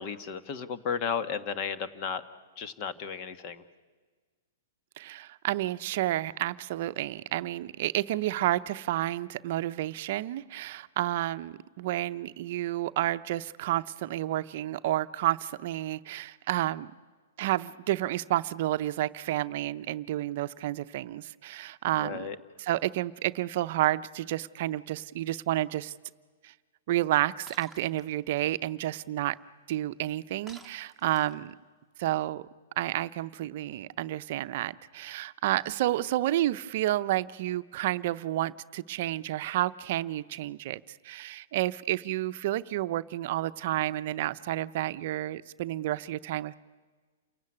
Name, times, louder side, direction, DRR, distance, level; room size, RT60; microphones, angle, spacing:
voice 1, 0.0-2.2 2.6-3.6 22.0-22.4, left 6 dB, 40° left, 11 dB, 1.5 m, -34 dB
voice 2, 5.0-16.9 17.4-22.3 22.6-25.9 26.4-26.5 26.9-29.4 29.7-31.5 32.0-32.4 32.8-46.5, right 14 dB, 55° right, 12 dB, 0.7 m, -30 dB
Shatter, 27.5-28.0 30.5-31.5, right 3 dB, ahead, 1.9 m, -50 dB
28.5 x 16.0 x 9.8 m, 1.4 s
hypercardioid pair, 135°, 0 cm